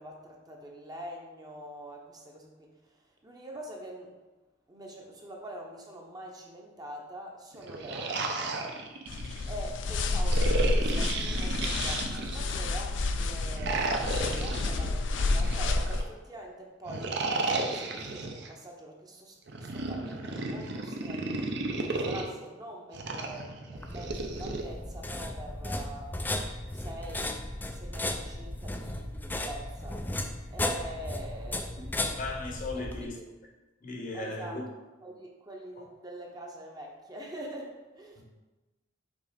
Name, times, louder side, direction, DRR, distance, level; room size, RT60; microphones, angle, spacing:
voice 1, 0.0-4.1 4.7-8.7 9.1-27.3 27.7-30.2 30.5-32.2 32.7-33.3 34.1-34.6 35.0-38.2, right 1 dB, 20° right, -1 dB, 0.8 m, -45 dB
sound 1, 7.5-9.5 10.3-12.6 13.5-16.1 16.9-18.5 19.5-22.3 22.9-24.6, right 3 dB, 60° right, 0.7 m, -33 dB
sound 2, 9.1-16.1, left 2 dB, 70° left, 0.4 m, -29 dB
sound 3, 23.8-33.1, left 1 dB, 10° left, 0.3 m, -35 dB
voice 2, 31.8-33.2 33.8-34.6 35.8-35.9 38.2-38.3, left 2 dB, 45° left, 1 dB, 0.9 m, -37 dB
5.3 x 3.7 x 5.1 m, 1.1 s
head